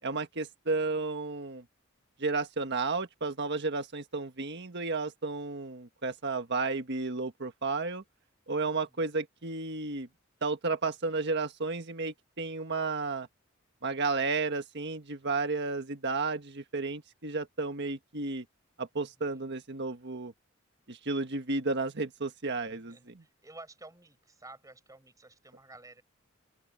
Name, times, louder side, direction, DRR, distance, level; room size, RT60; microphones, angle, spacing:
voice 1, 0.0-1.6 2.2-8.0 8.5-10.1 10.4-13.3 13.8-18.4 18.8-20.3 20.9-23.0, right 3 dB, 55° right, 1.6 m, -32 dB
voice 2, 8.7-9.1 19.0-19.5 22.7-26.0, right 2 dB, 15° right, 5.5 m, -53 dB
open air
head